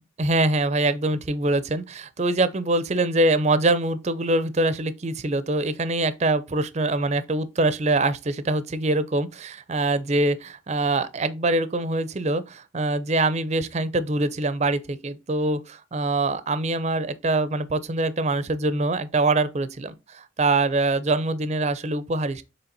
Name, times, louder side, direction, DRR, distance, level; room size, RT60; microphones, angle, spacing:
voice 1, 0.0-22.4, right 2 dB, 35° right, 0.5 m, -24 dB
7.0 x 3.4 x 3.9 m
head